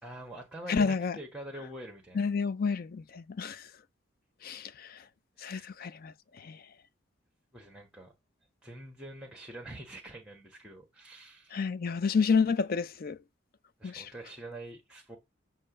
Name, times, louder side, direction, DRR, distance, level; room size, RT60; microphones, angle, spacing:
voice 1, 0.0-2.3 5.4-5.7 7.5-8.1 8.6-11.7 13.8-15.2, right 1 dB, 5° right, 1.3 m, -45 dB
voice 2, 0.7-1.2 2.1-3.6 4.4-4.9 5.4-6.1 6.4-6.6 11.5-13.2 13.8-14.1, left 5 dB, 50° left, 0.4 m, -29 dB
7.7 x 2.8 x 5.0 m
head